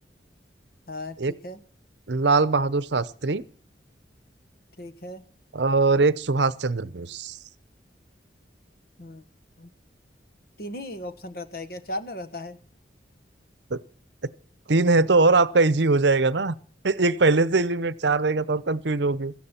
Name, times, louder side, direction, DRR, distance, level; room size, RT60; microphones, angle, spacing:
voice 1, 0.9-1.6 4.8-5.3 9.0-9.2 9.6-9.7 10.6-12.6, left 1 dB, 55° left, 1.4 m, -36 dB
voice 2, 2.1-3.4 5.5-7.4 13.7-13.8 14.7-16.5 16.8-19.3, right 3 dB, 75° right, 0.8 m, -21 dB
17.0 x 14.0 x 4.4 m
head